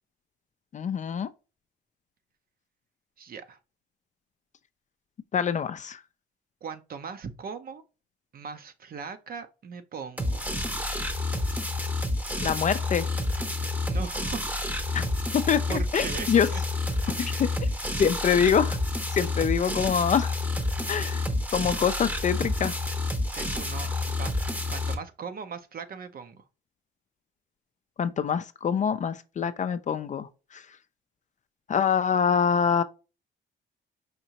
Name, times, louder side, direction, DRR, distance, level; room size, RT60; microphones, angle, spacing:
voice 1, 0.7-1.3 5.3-6.0 12.4-13.0 14.9-15.1 15.3-16.5 17.1-17.5 18.0-18.8 19.1-20.3 20.9-21.2 21.5-22.7 28.0-30.6 31.7-32.8, left 7 dB, 40° left, 0.4 m, -25 dB
voice 2, 3.2-3.6 6.6-7.8 8.3-10.5 13.8-14.5 15.7-16.6 17.2-17.9 23.3-26.5, right 6 dB, 50° right, 0.7 m, -39 dB
sound 1, 10.2-24.9, left 2 dB, 10° right, 0.8 m, -29 dB
5.1 x 2.7 x 2.9 m
cardioid pair, 90°, 20 cm